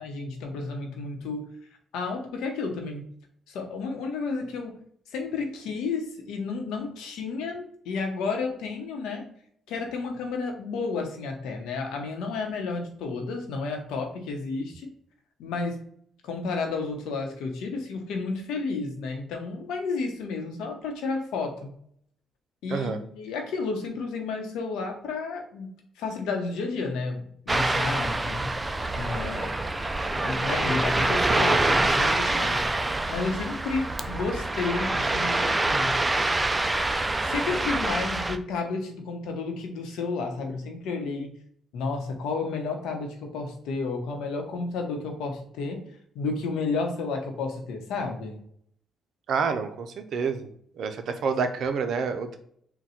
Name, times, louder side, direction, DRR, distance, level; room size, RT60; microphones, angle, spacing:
voice 1, 0.0-1.5 1.9-3.1 3.5-4.8 5.1-9.3 9.7-14.9 15.4-15.8 16.2-21.7 22.6-25.7 26.0-28.5 28.9-29.6 30.2-36.0 37.2-41.3 41.7-45.8 46.1-48.4, left 4 dB, 90° left, 3 dB, 0.9 m, -31 dB
voice 2, 22.7-23.0 49.3-50.5 50.8-52.4, right 5 dB, 65° right, 7 dB, 0.5 m, -28 dB
Ocean, 27.5-38.4, right 2 dB, 15° right, 0.4 m, -26 dB
3.9 x 2.2 x 4.3 m, 0.65 s
cardioid pair, 90°, 0 cm